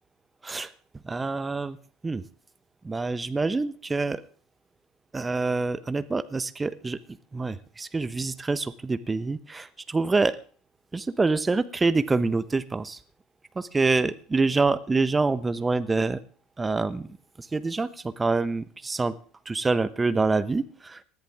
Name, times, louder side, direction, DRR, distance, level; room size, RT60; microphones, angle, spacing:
voice 1, 1.0-1.8 2.0-2.2 2.8-4.2 5.1-10.4 10.9-13.0 13.5-16.2 16.6-17.1 17.4-19.1 19.4-21.0, right 3 dB, 15° right, 15 dB, 1.1 m, -26 dB
20.0 x 14.5 x 3.6 m, 0.42 s
hypercardioid pair, 70°, 0 cm